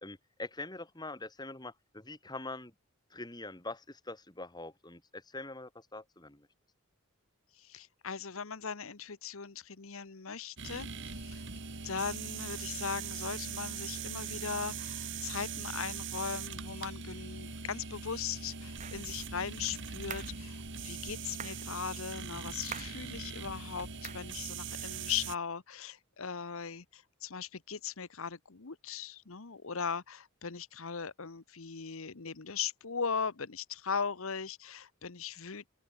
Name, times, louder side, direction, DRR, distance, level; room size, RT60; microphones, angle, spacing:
voice 1, 0.0-2.7 3.1-6.4, left 2 dB, 20° left, 2.1 m, -44 dB
voice 2, 7.6-11.4 11.8-35.7, left 6 dB, 70° left, 1.0 m, -39 dB
sound 1, 10.6-25.4, right 5 dB, 55° right, 2.4 m, -41 dB
sound 2, 18.8-19.1 20.1-20.4 21.4-21.7 22.7-23.0 24.0-24.3, right 7 dB, 30° right, 0.7 m, -43 dB
open air
head